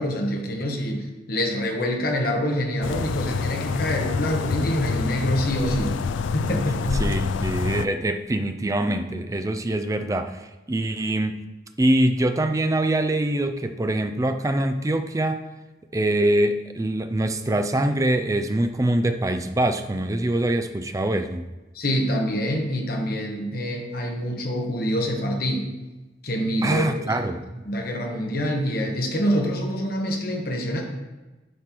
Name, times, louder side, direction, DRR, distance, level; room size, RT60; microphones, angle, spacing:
voice 1, 0.0-5.9 6.3-7.0 21.7-25.6 26.2-27.2 27.6-30.8, equal, 50° left, 2 dB, 1.2 m, -26 dB
sound 1, 2.8-7.9, left 5 dB, 80° left, 0.3 m, -27 dB
voice 2, 6.9-11.4 11.8-15.4 15.9-21.5 26.6-27.4, right 1 dB, 15° right, 7 dB, 0.4 m, -24 dB
9.3 x 3.2 x 5.9 m, 1.1 s
head